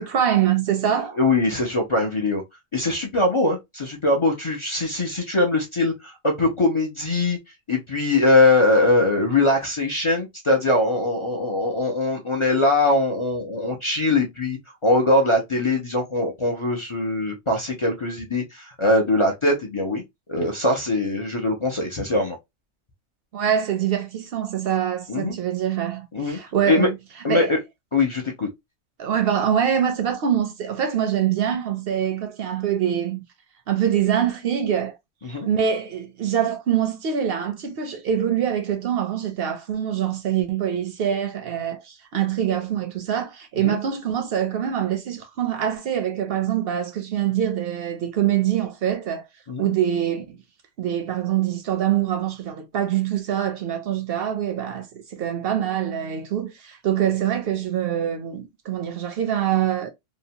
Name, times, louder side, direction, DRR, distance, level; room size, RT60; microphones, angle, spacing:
voice 1, 0.0-1.2 23.3-26.9 27.3-27.5 29.0-33.2 33.7-34.9 35.2-49.2 49.6-50.4 50.8-59.9, right 9 dB, 60° right, 0.7 m, -24 dB
voice 2, 1.2-2.4 2.7-7.4 7.7-20.0 20.3-22.4 25.1-25.4 26.1-26.4 26.7-26.9 27.2-27.6 27.9-28.5 35.2-35.5 43.6-43.8 49.5-49.7, left 2 dB, 45° left, 0.4 m, -22 dB
2.8 x 2.1 x 2.6 m
omnidirectional pair, 1.3 m